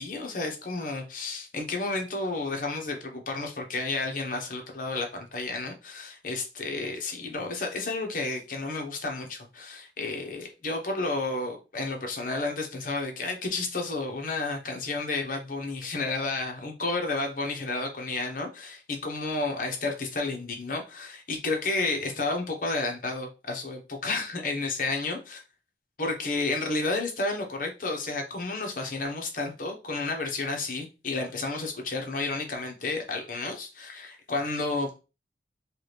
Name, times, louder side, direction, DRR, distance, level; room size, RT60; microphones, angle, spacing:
voice 1, 0.0-25.4 26.0-35.0, left 3 dB, 50° left, 1.0 m, -31 dB
4.7 x 2.4 x 3.3 m
head